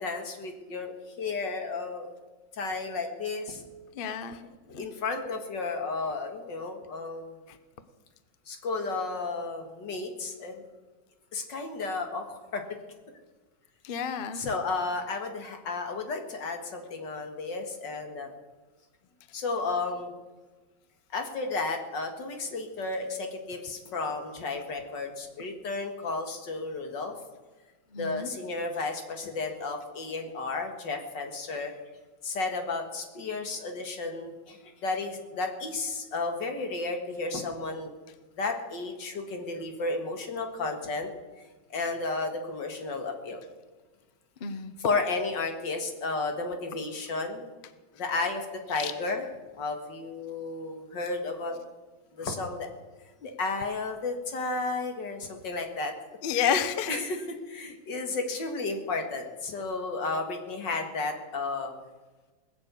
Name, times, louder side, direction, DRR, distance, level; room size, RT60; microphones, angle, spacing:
voice 1, 0.0-2.1 2.5-3.6 4.7-7.4 8.5-10.6 11.3-12.6 14.3-18.3 19.3-20.1 21.1-27.1 28.0-31.7 32.2-37.9 38.4-41.1 41.7-43.4 44.8-47.5 47.9-51.6 52.1-52.7 53.2-55.9 56.3-56.6 56.9-61.7, left 3 dB, 80° left, 4 dB, 2.5 m, -33 dB
voice 2, 4.0-4.4 4.7-4.8 13.8-14.5 27.9-28.3 44.4-44.7 56.2-56.9, left 7 dB, 40° left, 11 dB, 0.8 m, -29 dB
20.5 x 7.1 x 8.3 m, 1.3 s
omnidirectional pair, 1.9 m